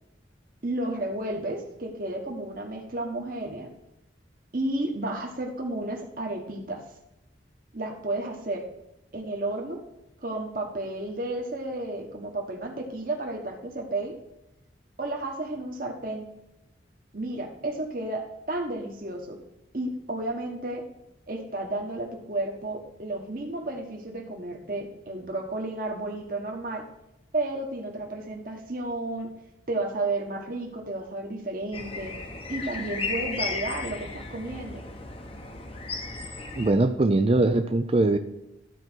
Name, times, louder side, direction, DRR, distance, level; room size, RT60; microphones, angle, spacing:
voice 1, 0.6-3.7 4.5-6.8 7.7-8.7 9.1-9.8 10.2-14.2 15.0-16.3 17.1-19.4 19.7-20.8 21.3-26.8 27.3-29.3 29.7-32.2 32.5-34.8, right 2 dB, 50° right, 1 dB, 1.3 m, -32 dB
sound 1, 31.7-36.7, left 3 dB, 30° left, 0.9 m, -35 dB
voice 2, 36.6-38.2, right 2 dB, 30° right, 8 dB, 0.4 m, -21 dB
12.0 x 4.6 x 6.1 m, 0.91 s
head